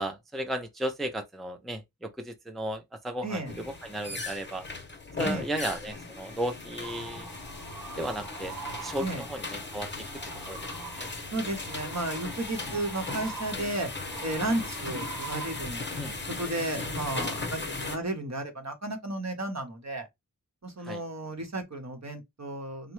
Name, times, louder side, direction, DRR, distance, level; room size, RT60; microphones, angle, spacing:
voice 1, 0.0-3.4 3.8-4.6 5.2-7.3 8.0-9.4 9.7-9.9 10.5-10.6 11.0-11.1 16.0-16.1 20.8-21.0, right 1 dB, ahead, 0.5 m, -34 dB
voice 2, 3.2-3.5 5.2-5.5 9.0-9.2 11.3-13.9 14.2-15.8 16.1-20.1 20.6-22.9, right 2 dB, 50° right, 0.9 m, -33 dB
sound 1, 3.4-18.0, left 3 dB, 30° left, 0.8 m, -38 dB
sound 2, 6.8-16.3, right 3 dB, 90° right, 0.9 m, -43 dB
3.6 x 2.1 x 3.0 m
wide cardioid pair, 55°, 34 cm